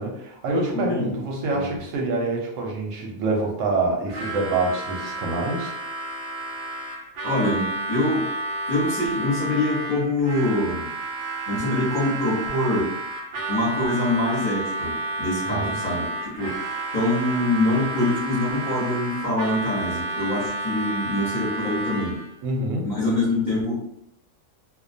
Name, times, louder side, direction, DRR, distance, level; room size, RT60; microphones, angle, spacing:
voice 1, 0.0-5.8 15.4-15.8 22.4-22.9, right 3 dB, 70° right, -1 dB, 0.9 m, -26 dB
voice 2, 0.5-1.2 1.5-1.7 7.2-8.3 8.7-10.9 11.5-12.9 13.5-14.9 15.2-22.2 22.8-23.7, left 1 dB, 40° left, -7 dB, 0.8 m, -24 dB
Harmonica, 4.1-22.3, right 2 dB, 90° right, 0.4 m, -31 dB
2.4 x 2.1 x 2.5 m, 0.77 s
omnidirectional pair, 1.6 m